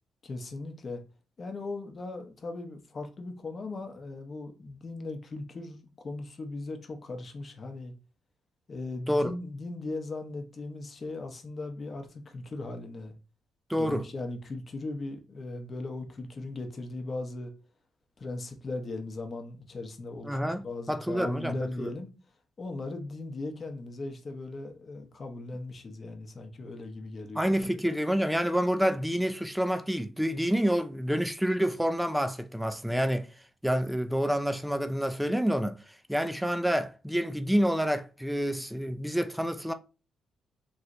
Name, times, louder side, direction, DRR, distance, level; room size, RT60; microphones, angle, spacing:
voice 1, 0.2-1.0 1.4-7.9 8.7-13.1 13.7-17.5 18.2-22.1 22.6-27.7, left 2 dB, 40° left, 0.8 m, -38 dB
voice 2, 13.7-14.0 20.2-20.6 20.9-21.9 27.3-33.3 33.6-35.8 36.1-39.7, equal, ahead, 0.4 m, -28 dB
3.1 x 2.9 x 2.5 m
cardioid pair, 90°, 0 cm